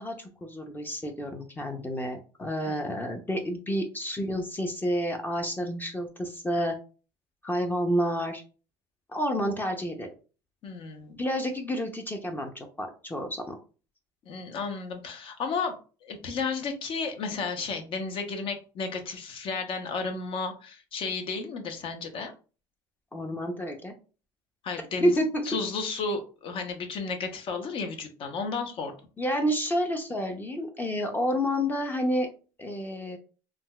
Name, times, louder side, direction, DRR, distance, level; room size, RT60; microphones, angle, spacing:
voice 1, 0.0-6.8 7.4-8.4 9.1-10.1 11.2-13.6 23.1-23.9 25.0-25.5 29.2-32.3 32.6-33.2, equal, 15° left, 4 dB, 0.5 m, -29 dB
voice 2, 10.6-11.2 14.3-22.3 24.6-25.1 25.4-28.9, left 4 dB, 55° left, 6 dB, 0.8 m, -33 dB
3.7 x 2.3 x 2.2 m, 0.36 s
supercardioid pair, 100°, 11 cm